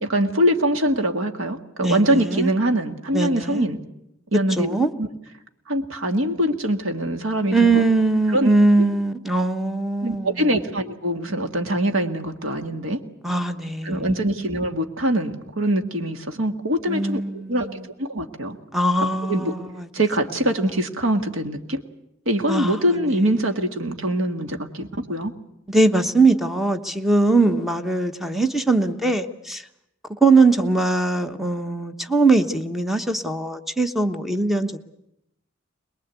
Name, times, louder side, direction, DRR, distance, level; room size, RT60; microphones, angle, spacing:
voice 1, 0.0-3.8 4.3-5.1 5.7-7.8 8.3-8.5 10.0-13.0 13.8-17.7 18.0-18.6 19.3-19.5 19.9-21.8 22.3-25.3, right 1 dB, 80° right, 6 dB, 1.9 m, -23 dB
voice 2, 1.8-2.5 3.1-3.7 4.6-4.9 7.5-10.5 13.2-14.1 16.9-17.9 18.7-19.9 22.5-23.0 25.7-29.6 30.2-34.8, right 3 dB, ahead, 7 dB, 1.2 m, -21 dB
22.5 x 21.5 x 8.3 m, 0.83 s
head